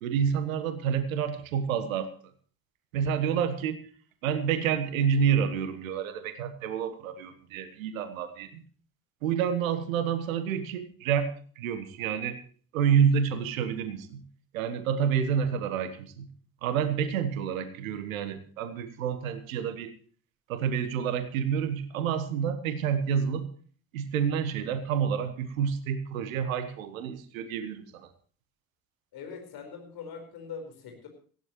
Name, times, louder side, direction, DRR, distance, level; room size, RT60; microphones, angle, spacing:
voice 1, 0.0-2.1 2.9-3.8 4.2-8.6 9.2-12.4 12.7-14.2 14.5-16.3 16.6-19.9 20.5-23.5 23.9-28.1, right 7 dB, 75° right, 12 dB, 1.4 m, -28 dB
voice 2, 29.1-31.1, left 6 dB, 60° left, 4 dB, 4.7 m, -42 dB
18.5 x 15.5 x 3.1 m, 0.43 s
figure-of-eight pair, 40°, 41 cm